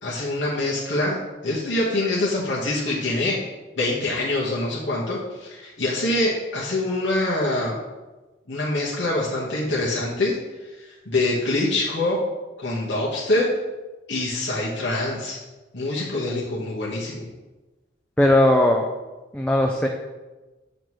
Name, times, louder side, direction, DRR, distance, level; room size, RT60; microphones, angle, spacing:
voice 1, 0.0-3.5 3.8-7.8 8.5-10.4 10.8-12.2 12.6-13.5 14.1-15.4 15.7-17.3, left 2 dB, 80° left, -5 dB, 1.3 m, -25 dB
voice 2, 18.2-18.9 19.3-19.9, left 1 dB, 5° left, 1 dB, 0.4 m, -18 dB
7.4 x 6.6 x 3.2 m, 1.2 s
head